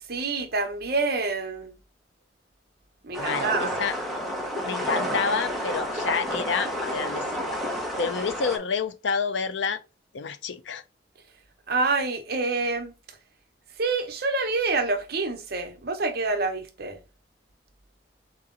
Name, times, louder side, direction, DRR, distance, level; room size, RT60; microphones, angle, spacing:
voice 1, 0.1-1.8 3.0-3.8 11.7-12.9 13.8-17.0, right 3 dB, 55° right, 0.8 m, -27 dB
sound 1, 3.1-8.6, equal, ahead, 0.8 m, -30 dB
voice 2, 3.2-3.9 4.6-7.6 8.0-9.8 10.1-10.8, left 5 dB, 80° left, 0.5 m, -29 dB
3.8 x 3.0 x 3.6 m
head